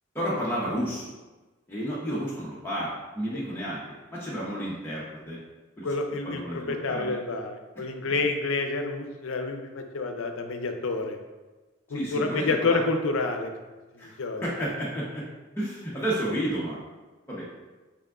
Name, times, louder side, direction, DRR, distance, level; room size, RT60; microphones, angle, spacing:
voice 1, 0.1-1.1 1.7-3.8 4.1-5.4 5.8-5.9 6.2-7.2 7.8-7.9 11.9-12.8 14.0-15.2 15.6-16.8 17.3-17.5, equal, 10° left, -7 dB, 0.7 m, -31 dB
voice 2, 5.8-11.2 11.9-13.5 14.2-14.4, left 3 dB, 75° left, 5 dB, 0.5 m, -28 dB
6.0 x 3.5 x 2.3 m, 1.2 s
head